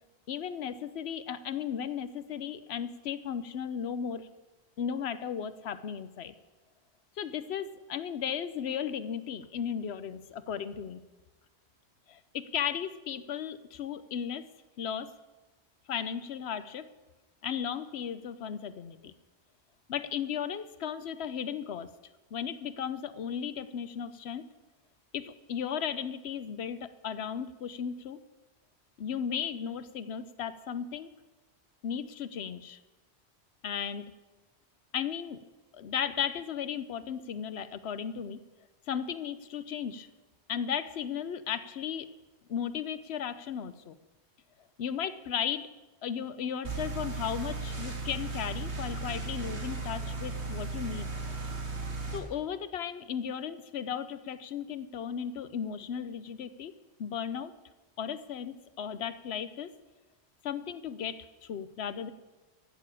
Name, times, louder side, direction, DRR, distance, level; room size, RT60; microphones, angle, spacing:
voice 1, 0.3-4.3 4.8-6.3 7.2-11.0 12.1-14.5 14.8-15.1 15.9-16.9 17.4-19.1 19.9-21.9 22.3-24.5 25.1-28.2 29.0-31.1 31.8-32.8 33.6-34.0 34.9-35.4 35.7-38.4 38.9-40.1 40.5-42.1 42.5-44.0 44.8-45.7 46.0-51.1 52.1-56.7 57.0-57.5 58.0-59.7 60.4-62.1, left 8 dB, 75° left, 14 dB, 1.0 m, -35 dB
sound 1, 46.6-52.2, right 3 dB, 85° right, 2.4 m, -36 dB
13.5 x 7.1 x 8.5 m, 1.1 s
omnidirectional pair, 1.1 m